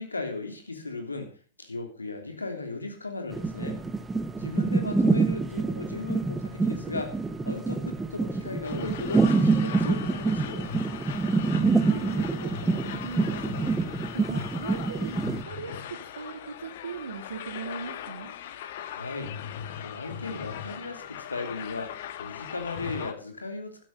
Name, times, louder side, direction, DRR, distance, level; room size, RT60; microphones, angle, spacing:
voice 1, 0.0-3.8 4.4-7.2 7.4-10.7 18.9-19.3 19.8-23.8, left 3 dB, 85° left, 5 dB, 3.1 m, -36 dB
sound 1, 3.3-15.4, right 3 dB, 10° right, 0.9 m, -26 dB
voice 2, 4.4-5.3 11.4-13.8 14.1-18.3, right 5 dB, 75° right, -1 dB, 2.4 m, -39 dB
sound 2, 8.6-23.1, left 9 dB, 55° left, 1.4 m, -39 dB
12.5 x 11.0 x 5.5 m, 0.37 s
figure-of-eight pair, 100°, 0 cm